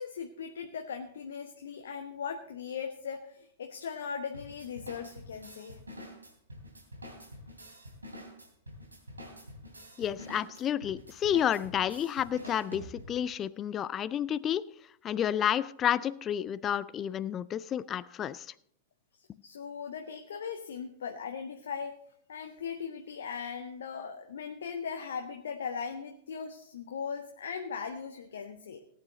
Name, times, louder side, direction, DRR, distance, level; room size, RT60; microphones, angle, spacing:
voice 1, 0.0-5.8 19.4-21.9 22.3-28.8, left 6 dB, 65° left, 1.0 m, -39 dB
sound 1, 4.3-13.3, equal, 85° right, 3.0 m, -47 dB
voice 2, 10.0-14.6 15.0-18.5, left 10 dB, 25° left, 0.4 m, -30 dB
18.0 x 9.1 x 3.9 m
figure-of-eight pair, 95°, 0 cm